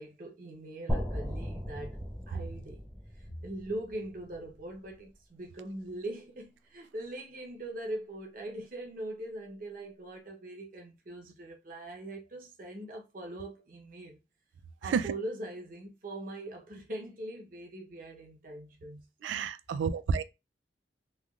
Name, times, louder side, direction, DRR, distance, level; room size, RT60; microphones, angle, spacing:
voice 1, 0.0-2.0 2.3-2.9 3.1-14.2 14.8-19.3, right 1 dB, 50° right, 0.8 m, -41 dB
sound 1, 0.9-4.9, equal, 5° right, 0.6 m, -37 dB
voice 2, 19.2-20.2, right 6 dB, 85° right, 0.3 m, -29 dB
3.3 x 2.4 x 2.4 m
head